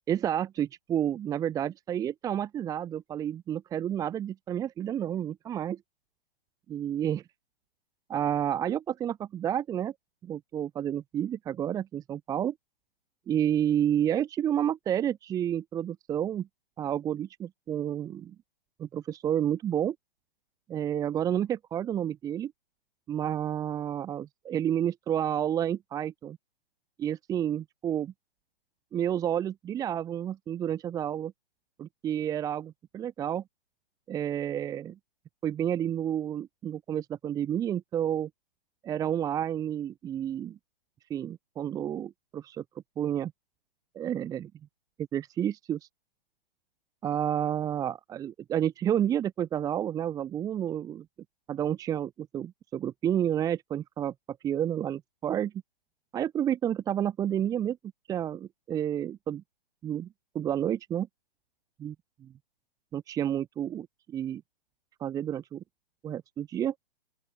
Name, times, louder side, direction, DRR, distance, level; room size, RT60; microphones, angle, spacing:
voice 1, 0.1-5.8 6.7-7.2 8.1-9.9 10.2-12.5 13.3-16.5 16.8-18.3 18.8-20.0 20.7-22.5 23.1-26.4 27.0-28.1 28.9-31.3 31.8-33.4 34.1-35.0 35.4-38.3 38.8-40.6 41.1-42.6 43.0-43.3 43.9-44.5 45.1-45.9 47.0-51.1 51.5-55.5 56.1-57.8 58.1-59.4 59.8-60.1 60.3-61.1 61.8-61.9 62.2-62.3 62.9-64.4 65.0-65.6 66.0-66.7, right 10 dB, 10° right, 1.0 m, -30 dB
open air
figure-of-eight pair, 130°, 30 cm